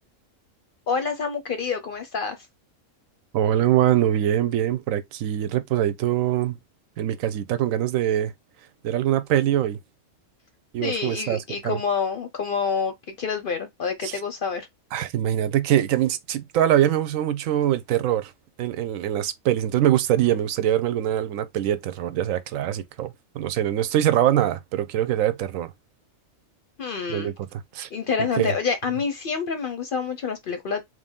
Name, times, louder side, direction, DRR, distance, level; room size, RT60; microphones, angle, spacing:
voice 1, 0.9-2.4 10.8-14.7 26.8-27.3 27.9-30.8, left 5 dB, 55° left, 0.7 m, -27 dB
voice 2, 3.3-6.6 7.0-8.3 8.8-9.8 10.7-11.8 14.0-14.1 14.9-18.3 18.6-25.7 27.1-27.9 28.4-28.5, right 11 dB, 85° right, 1.0 m, -23 dB
3.2 x 2.7 x 3.5 m
omnidirectional pair, 1.3 m